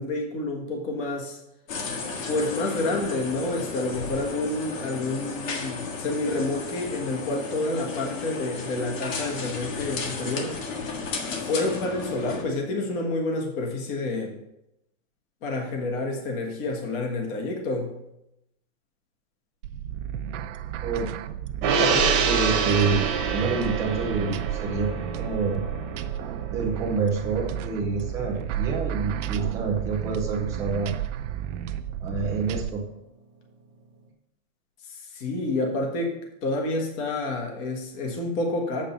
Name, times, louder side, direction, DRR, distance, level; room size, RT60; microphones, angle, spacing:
voice 1, 0.0-1.4 2.3-10.5 11.4-14.3 15.4-18.0 34.9-38.8, left 2 dB, 30° left, 1 dB, 1.5 m, -29 dB
sound 1, 1.7-12.4, left 4 dB, 75° left, 1.8 m, -34 dB
sound 2, 19.6-32.7, right 10 dB, 65° right, 0.7 m, -32 dB
voice 2, 21.6-24.9 25.2-25.6 26.5-30.9 32.0-32.8, right 4 dB, 10° right, -1 dB, 0.3 m, -28 dB
Gong, 21.6-28.2 28.6-28.7, right 5 dB, 25° right, 1.1 m, -27 dB
7.3 x 5.2 x 6.6 m, 0.88 s
supercardioid pair, 165°, 39 cm